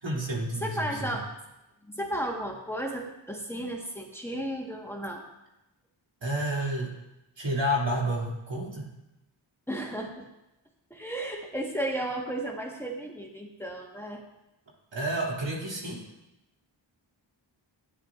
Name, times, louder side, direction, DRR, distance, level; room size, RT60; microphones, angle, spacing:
voice 1, 0.0-1.2 6.2-6.9 7.4-8.9 14.9-16.0, right 1 dB, 70° right, -4 dB, 2.6 m, -30 dB
voice 2, 0.6-1.3 1.9-5.2 9.7-10.2 10.9-14.3, right 1 dB, 5° left, 0 dB, 1.3 m, -34 dB
12.0 x 9.7 x 2.5 m, 0.93 s
cardioid pair, 55°, 46 cm